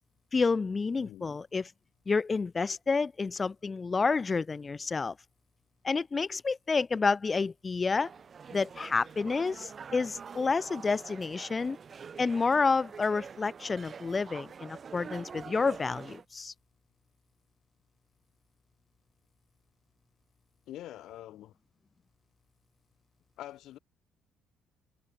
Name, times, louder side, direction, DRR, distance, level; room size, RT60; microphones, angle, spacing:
voice 1, 0.3-1.7 2.1-5.1 5.8-8.1 8.5-11.8 12.2-16.5, left 4 dB, 30° left, 0.9 m, -29 dB
voice 2, 0.9-1.4 20.7-21.5 23.4-23.8, left 13 dB, 65° left, 1.1 m, -45 dB
sound 1, 8.0-16.3, right 6 dB, 45° right, 2.6 m, -46 dB
hypercardioid pair, 50°, 0 cm